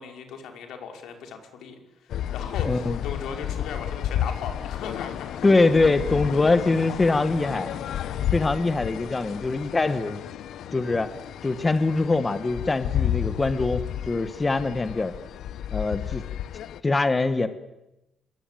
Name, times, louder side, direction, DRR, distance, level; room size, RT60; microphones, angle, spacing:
voice 1, 0.0-5.5, left 6 dB, 90° left, 4 dB, 5.3 m, -38 dB
sound 1, 2.1-16.8, left 10 dB, 65° left, 0.9 m, -32 dB
voice 2, 2.7-3.0 5.4-7.7 8.3-10.2 10.7-11.1 11.4-15.1 15.7-16.2 16.8-17.5, left 3 dB, 15° left, 10 dB, 1.2 m, -23 dB
27.5 x 22.0 x 9.2 m, 0.92 s
cardioid pair, 175°, 0 cm